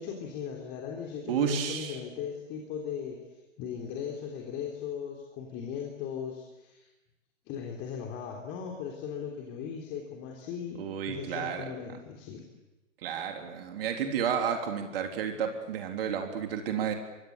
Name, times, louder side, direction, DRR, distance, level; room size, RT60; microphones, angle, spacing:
voice 1, 0.0-3.2 3.6-6.9 7.5-10.8 11.1-12.4, left 7 dB, 25° left, 1 dB, 3.5 m, -38 dB
voice 2, 1.3-2.0 10.8-11.7 13.0-16.9, right 7 dB, 45° right, 4 dB, 3.5 m, -31 dB
26.5 x 23.5 x 8.4 m, 1.1 s
figure-of-eight pair, 115°, 39 cm